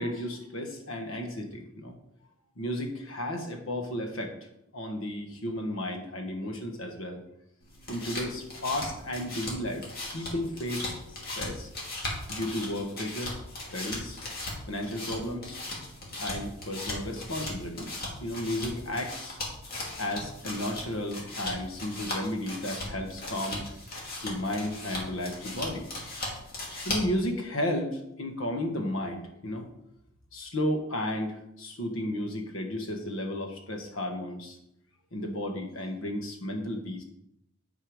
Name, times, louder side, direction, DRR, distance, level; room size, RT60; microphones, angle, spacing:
voice 1, 0.0-2.0 2.6-4.3 4.7-7.2 7.9-9.8 10.1-10.9 11.4-11.7 12.3-13.3 13.7-14.2 14.7-15.6 16.2-19.4 20.0-23.6 24.2-25.9 26.8-29.7 30.3-34.6 35.1-37.0, left 1 dB, 85° left, 3 dB, 1.5 m, -33 dB
sound 1, 7.6-27.2, left 2 dB, 50° left, 2.2 m, -38 dB
9.4 x 4.6 x 5.0 m, 0.81 s
head